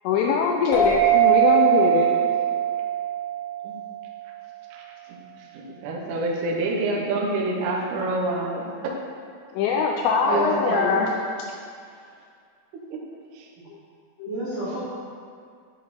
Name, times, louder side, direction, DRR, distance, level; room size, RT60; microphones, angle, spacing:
voice 1, 0.0-2.3 9.5-11.1 14.2-14.3, left 6 dB, 85° left, 0 dB, 2.5 m, -22 dB
sound 1, 0.7-4.0, right 10 dB, 70° left, 3.3 m, -21 dB
voice 2, 4.7-8.9 10.3-10.9 12.7-13.0 13.3-13.5, right 2 dB, 80° right, -2 dB, 2.5 m, -28 dB
voice 3, 10.2-11.1 14.3-14.8, right 2 dB, 50° right, -12 dB, 2.0 m, -28 dB
9.4 x 4.6 x 4.1 m, 2.2 s
omnidirectional pair, 5.5 m